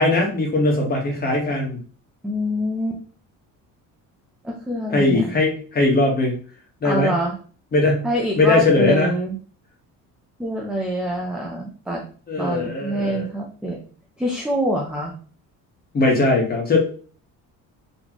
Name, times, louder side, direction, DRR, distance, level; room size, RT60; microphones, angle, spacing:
voice 1, 0.0-1.8 4.9-6.3 6.8-7.2 7.7-8.1 8.4-9.1 12.3-13.2 15.9-16.8, left 2 dB, 25° left, 0 dB, 1.3 m, -19 dB
voice 2, 2.2-3.0 4.4-5.3 6.8-7.4 8.0-9.4 10.4-12.1 12.4-13.8 14.2-15.1, right 1 dB, ahead, -1 dB, 0.4 m, -25 dB
4.1 x 3.2 x 2.9 m, 0.41 s
cardioid pair, 165°, 35 cm